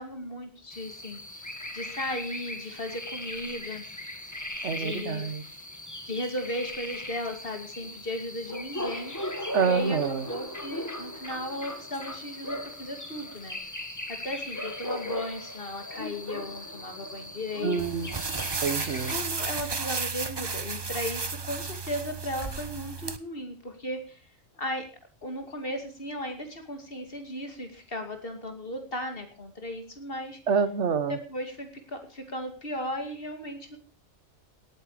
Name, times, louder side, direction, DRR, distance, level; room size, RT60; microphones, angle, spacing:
voice 1, 0.0-1.5 1.7-3.8 4.7-5.3 6.0-9.1 9.6-13.6 14.1-18.2 19.1-24.2 24.6-24.9 25.2-30.4 31.1-33.8, left 1 dB, 40° left, 5 dB, 2.7 m, -36 dB
sound 1, 0.7-19.1, left 1 dB, 15° left, 1.4 m, -38 dB
voice 2, 4.6-5.4 9.5-10.3 17.6-19.1 30.5-31.2, right 6 dB, 60° right, 13 dB, 1.4 m, -27 dB
sound 2, 17.8-23.2, right 4 dB, 25° right, 0.5 m, -33 dB
17.5 x 9.2 x 4.9 m, 0.37 s
omnidirectional pair, 1.4 m